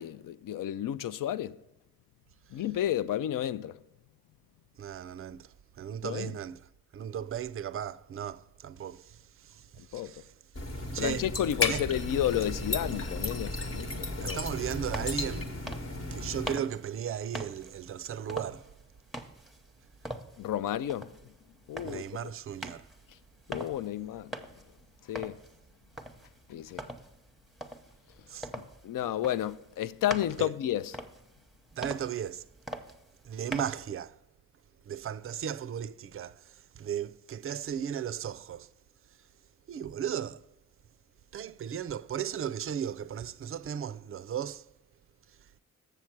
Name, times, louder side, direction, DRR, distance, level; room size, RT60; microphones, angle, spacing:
voice 1, 0.0-1.6 2.5-3.8 6.0-6.4 9.8-10.1 11.0-14.4 20.4-21.1 21.7-22.0 23.5-24.3 25.1-25.4 26.5-26.8 28.8-31.0, left 11 dB, 65° left, 0.5 m, -31 dB
voice 2, 4.8-6.7 6.9-10.3 10.9-11.3 11.6-11.8 14.2-15.6 16.1-18.7 21.8-22.8 28.3-28.5 30.4-30.5 31.8-32.4 33.2-34.2 34.9-38.7 39.7-40.4 41.3-44.7, right 9 dB, 40° right, 0.4 m, -36 dB
sound 1, 10.5-16.6, left 3 dB, 40° left, 1.1 m, -34 dB
sound 2, 14.8-33.9, equal, ahead, 0.9 m, -44 dB
7.2 x 6.8 x 4.5 m
supercardioid pair, 50°, 35 cm